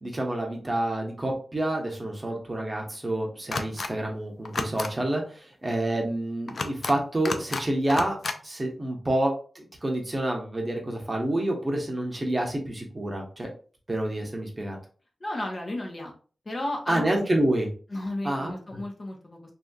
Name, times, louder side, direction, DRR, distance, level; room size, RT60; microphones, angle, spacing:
voice 1, 0.0-8.2 8.4-13.5 13.9-14.8 16.9-17.7 18.2-18.8, right 1 dB, 30° right, 1 dB, 0.8 m, -28 dB
sound 1, 3.5-3.9 4.4-4.9 6.5-6.9 7.2-7.6 7.9-8.4, left 3 dB, 65° left, 0.3 m, -31 dB
voice 2, 15.2-16.1 16.4-17.0 17.9-19.5, left 1 dB, 40° left, 1 dB, 0.8 m, -33 dB
2.6 x 2.6 x 2.3 m, 0.39 s
wide cardioid pair, 80°, 0 cm